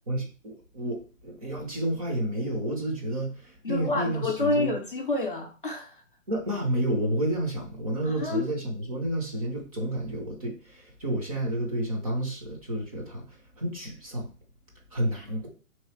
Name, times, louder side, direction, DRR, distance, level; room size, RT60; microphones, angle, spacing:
voice 1, 0.1-4.7 6.3-14.3 14.9-15.5, right 1 dB, 25° right, -1 dB, 0.9 m, -30 dB
voice 2, 3.6-6.0 8.0-8.4, left 2 dB, 40° left, 2 dB, 0.5 m, -28 dB
3.5 x 3.1 x 4.5 m, 0.36 s
hypercardioid pair, 170°, 41 cm